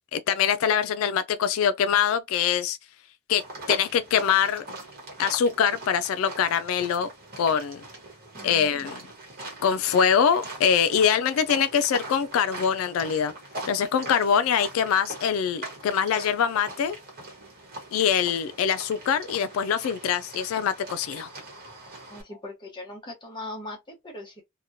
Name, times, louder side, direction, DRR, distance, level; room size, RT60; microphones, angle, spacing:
voice 1, 0.1-2.8 3.3-3.4 3.7-4.6 5.2-7.1 7.4-7.8 8.4-9.0 9.6-13.3 13.7-17.0 17.9-21.3, left 7 dB, 85° left, 0.3 m, -24 dB
sound 1, 3.4-22.2, right 2 dB, 45° right, 1.1 m, -41 dB
voice 2, 8.4-8.9 22.1-24.4, left 2 dB, 20° left, 0.9 m, -40 dB
2.9 x 2.2 x 2.6 m
head